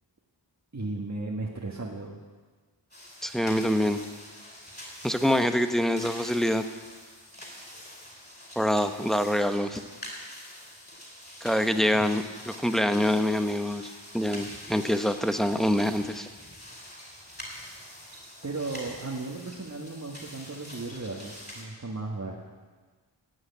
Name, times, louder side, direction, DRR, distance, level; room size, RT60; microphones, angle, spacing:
voice 1, 0.7-2.2 18.4-22.4, right 3 dB, 35° right, -2 dB, 1.6 m, -35 dB
sound 1, 2.9-21.6, left 1 dB, 20° left, 4.8 m, -45 dB
voice 2, 3.2-4.0 5.0-6.6 8.6-9.8 11.4-16.3, equal, ahead, 8 dB, 0.9 m, -25 dB
16.0 x 6.4 x 9.6 m, 1.4 s
wide cardioid pair, 55°, 46 cm